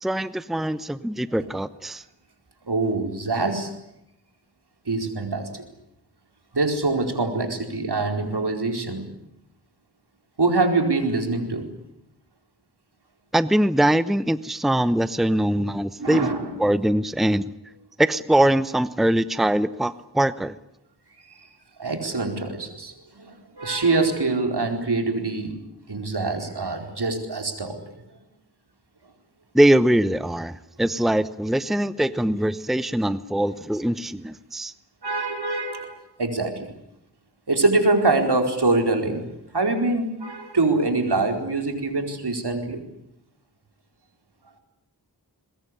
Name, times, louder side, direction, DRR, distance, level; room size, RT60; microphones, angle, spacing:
voice 1, 0.0-2.0 13.3-16.3 16.6-17.5 18.0-20.5 29.5-34.7, right 1 dB, ahead, 14 dB, 0.9 m, -22 dB
voice 2, 2.6-3.8 4.9-5.7 6.5-9.1 10.4-11.7 16.0-16.7 21.3-21.4 21.8-27.8 35.0-36.7 37.5-39.3 39.5-42.9, right 3 dB, 75° right, 4 dB, 4.6 m, -24 dB
22.5 x 21.5 x 9.9 m, 0.83 s
wide cardioid pair, 50°, 40 cm